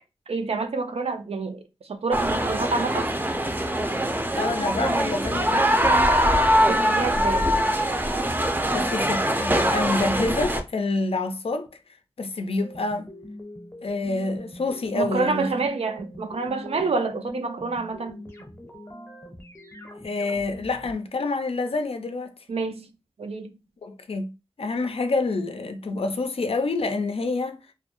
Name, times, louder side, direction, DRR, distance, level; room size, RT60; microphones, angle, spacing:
voice 1, 0.3-1.6 1.9-3.1 6.7-7.5 14.9-18.2 22.5-22.9 23.2-23.5, right 3 dB, 80° right, 0.4 m, -28 dB
sound 1, 2.1-10.6, equal, 20° right, 0.4 m, -22 dB
voice 2, 4.3-5.7 8.7-11.7 12.2-13.1 13.8-15.5 20.0-22.4 23.8-24.3 24.6-27.6, left 3 dB, 70° left, 0.4 m, -27 dB
sound 2, 12.6-20.9, equal, 25° left, 0.7 m, -42 dB
2.3 x 2.1 x 2.9 m
wide cardioid pair, 50°, 10 cm